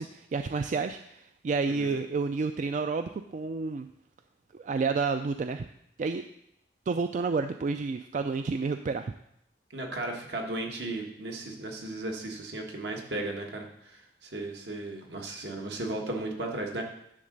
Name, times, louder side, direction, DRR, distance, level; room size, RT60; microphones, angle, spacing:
voice 1, 0.0-3.9 4.5-5.7 6.0-6.2 6.9-9.1, right 4 dB, 45° right, 8 dB, 0.3 m, -30 dB
voice 2, 9.7-16.8, right 2 dB, 75° right, 1 dB, 1.6 m, -35 dB
10.0 x 3.8 x 6.5 m, 0.75 s
head